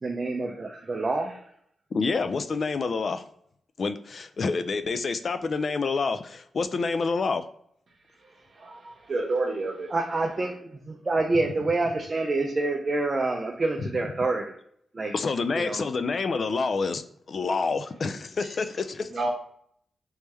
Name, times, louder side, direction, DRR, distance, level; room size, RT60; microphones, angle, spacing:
voice 1, 0.0-1.4 9.9-14.5 14.9-15.1 15.5-15.9, right 2 dB, 35° right, 0.5 m, -27 dB
voice 2, 1.9-3.2 3.8-7.4 15.1-17.0 17.3-19.3, left 4 dB, 55° left, 0.3 m, -28 dB
voice 3, 8.2-9.9 18.4-18.5 19.1-19.3, right 2 dB, 55° right, 1.1 m, -30 dB
3.4 x 3.2 x 3.1 m
cardioid pair, 80°, 0 cm